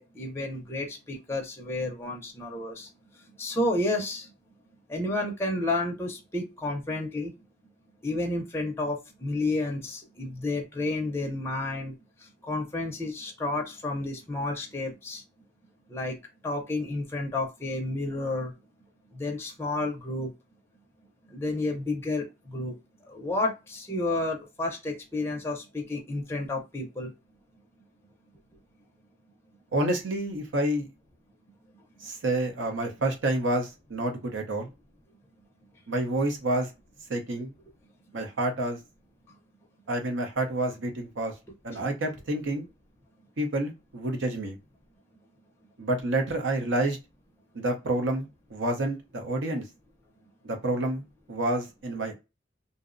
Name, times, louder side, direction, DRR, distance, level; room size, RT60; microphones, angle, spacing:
voice 1, 0.0-2.9 3.4-4.3 4.9-7.3 8.0-11.9 12.5-15.2 15.9-16.2 16.4-18.5 19.1-20.3 21.3-22.7 23.1-27.1, left 2 dB, 15° left, 0.4 m, -31 dB
voice 2, 29.7-30.9 32.0-34.7 35.9-36.7 37.1-37.5 38.1-38.8 39.9-41.3 41.6-42.7 43.4-44.6 45.8-47.0 47.5-49.6 50.4-51.0 51.3-52.2, right 1 dB, 80° right, 0.7 m, -28 dB
2.6 x 2.0 x 2.4 m
head